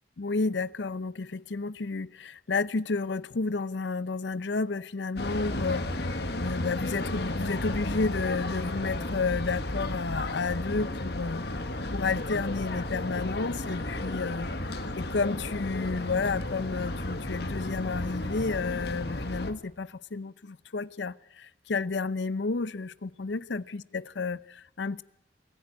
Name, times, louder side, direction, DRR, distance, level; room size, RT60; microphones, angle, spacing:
voice 1, 0.2-11.4 11.9-14.5 15.0-25.0, left 4 dB, 80° left, 0.7 m, -31 dB
sound 1, 5.2-19.5, left 1 dB, 60° left, 1.5 m, -33 dB
21.5 x 14.0 x 9.4 m
head